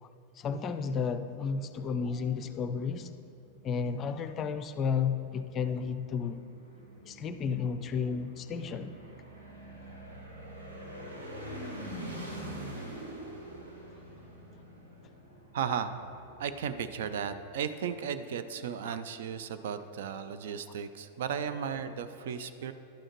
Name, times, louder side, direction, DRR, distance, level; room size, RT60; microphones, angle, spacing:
voice 1, 0.4-3.1 3.6-6.4 7.0-8.9 12.1-12.3 18.8-19.0, left 6 dB, 30° left, 0.4 m, -32 dB
sound 1, 1.4-17.6, right 1 dB, 80° right, 1.5 m, -46 dB
voice 2, 15.5-16.0 16.4-22.7, right 7 dB, 55° right, 0.4 m, -35 dB
11.5 x 8.7 x 2.9 m
figure-of-eight pair, 90°, 0 cm